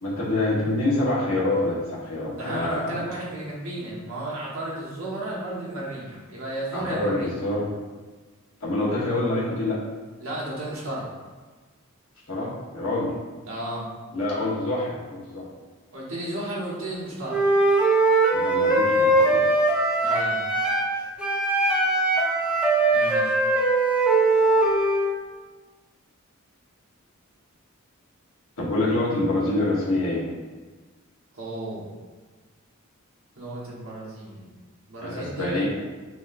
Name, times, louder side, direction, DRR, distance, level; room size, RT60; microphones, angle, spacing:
voice 1, 0.0-2.9 6.7-7.7 8.6-9.8 12.3-13.1 14.1-15.4 18.3-19.4 28.6-30.3 35.0-35.7, left 2 dB, 75° left, -6 dB, 1.2 m, -26 dB
voice 2, 2.4-7.3 10.2-11.1 13.4-13.8 15.9-17.4 20.0-20.4 22.9-23.4 31.3-31.9 33.4-34.6 34.9-35.7, right 1 dB, 70° right, -5 dB, 1.4 m, -33 dB
Wind instrument woodwind instrument, 17.3-20.9 21.2-25.1, right 2 dB, 5° right, 0.7 m, -21 dB
6.0 x 2.9 x 2.5 m, 1.3 s
head